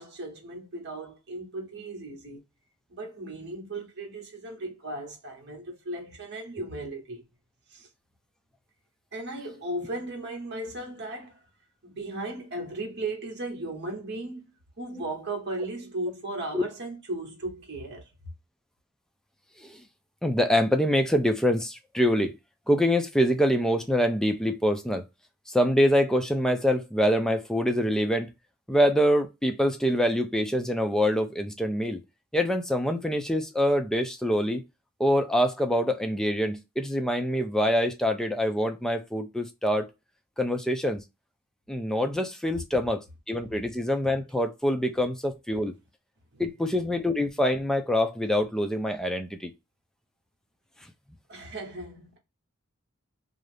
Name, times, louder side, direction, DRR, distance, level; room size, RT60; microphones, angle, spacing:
voice 1, 0.0-2.4 2.9-7.2 7.7-7.9 9.1-11.4 11.8-18.1 46.3-46.4 51.3-52.2, right 2 dB, 55° right, 1.1 m, -36 dB
voice 2, 20.2-22.3 22.7-25.0 25.5-28.3 28.7-32.0 32.3-34.6 35.0-39.9 40.4-41.0 41.7-43.0 43.3-45.7 46.4-49.5, equal, 5° left, 0.3 m, -25 dB
2.6 x 2.4 x 3.1 m
head